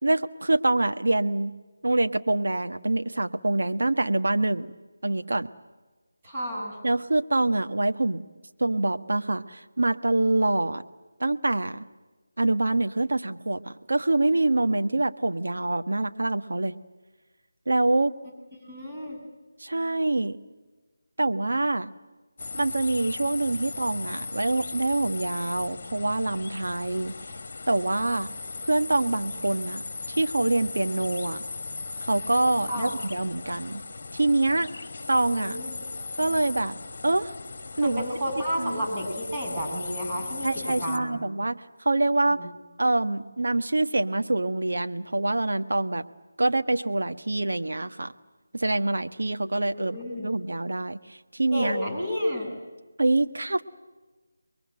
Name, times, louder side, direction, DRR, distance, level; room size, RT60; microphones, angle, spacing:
voice 1, 0.0-1.5 1.8-4.7 5.0-5.5 6.8-8.2 8.6-10.8 11.2-11.8 12.4-16.8 17.7-18.1 19.6-20.4 21.2-21.9 22.5-27.2 27.7-28.3 28.6-29.8 30.1-31.4 32.0-33.8 34.1-34.7 35.1-35.6 36.2-36.8 37.0-37.3 37.8-38.0 38.6-38.9 40.4-42.4 42.8-46.1 46.4-48.1 48.5-50.0 50.2-51.8 53.0-53.7, right 2 dB, 70° right, 8 dB, 1.4 m, -25 dB
voice 2, 6.2-6.8 18.7-19.2 32.7-32.9 35.3-35.7 37.8-41.2 42.3-42.5 49.7-50.3 51.5-52.6, equal, 20° right, -1 dB, 7.0 m, -31 dB
sound 1, 22.4-41.0, left 3 dB, 45° left, 1.5 m, -37 dB
28.5 x 22.5 x 7.7 m, 1.2 s
figure-of-eight pair, 160°, 0 cm